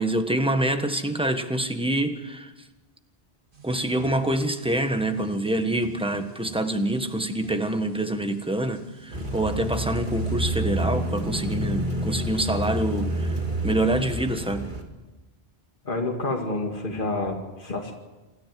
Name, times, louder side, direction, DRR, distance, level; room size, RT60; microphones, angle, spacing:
voice 1, 0.0-2.5 3.6-13.4 13.6-14.7, right 1 dB, 5° right, 7 dB, 1.4 m, -26 dB
sound 1, 3.5-10.4, right 3 dB, 90° right, 2.9 m, -47 dB
sound 2, 9.1-14.8, right 1 dB, 50° right, 2.6 m, -28 dB
voice 2, 15.8-17.9, left 2 dB, 55° left, 1 dB, 2.4 m, -28 dB
27.5 x 13.0 x 7.7 m, 1.2 s
omnidirectional pair, 1.1 m